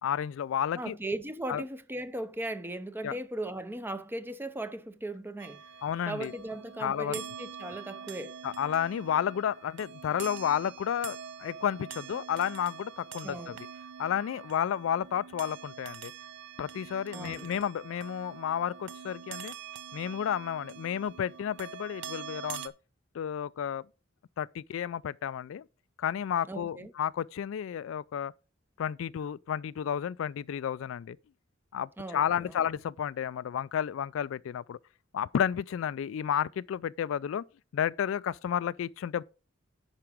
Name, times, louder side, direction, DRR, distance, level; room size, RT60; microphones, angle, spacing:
voice 1, 0.0-1.0 1.5-1.6 3.0-3.2 5.8-6.3 6.8-7.1 8.4-13.5 14.0-16.1 16.6-19.5 19.9-22.7 23.1-23.8 24.4-25.6 26.0-28.3 28.8-31.2 31.7-34.8 35.1-37.4 37.7-39.2, left 9 dB, 75° left, 0.3 m, -31 dB
voice 2, 0.7-5.6 6.1-8.3 13.2-13.6 17.1-17.5 26.5-26.9 32.0-32.6, right 1 dB, 10° right, 0.6 m, -38 dB
sound 1, 5.4-22.7, right 8 dB, 65° right, 0.7 m, -45 dB
10.5 x 4.9 x 4.9 m
head